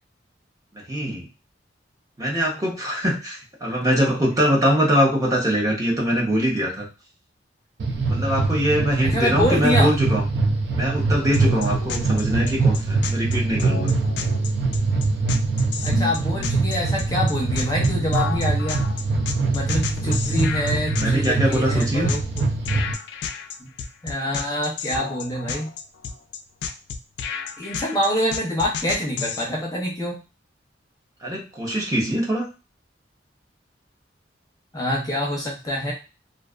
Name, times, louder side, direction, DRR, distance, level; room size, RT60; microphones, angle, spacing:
voice 1, 0.7-1.2 2.2-6.9 8.1-10.3 10.7-13.9 20.2-20.4 21.0-22.1 31.2-32.5, equal, 20° right, -2 dB, 0.8 m, -23 dB
sound 1, 7.8-22.9, right 3 dB, 70° right, 0.5 m, -23 dB
voice 2, 9.0-9.9 15.8-18.8 19.5-22.2 23.6-23.7 24.0-25.7 27.6-30.2 34.7-35.9, equal, 20° left, -2 dB, 0.6 m, -25 dB
sound 2, 11.3-29.5, left 6 dB, 65° left, 0.3 m, -32 dB
2.4 x 2.4 x 2.3 m, 0.30 s
head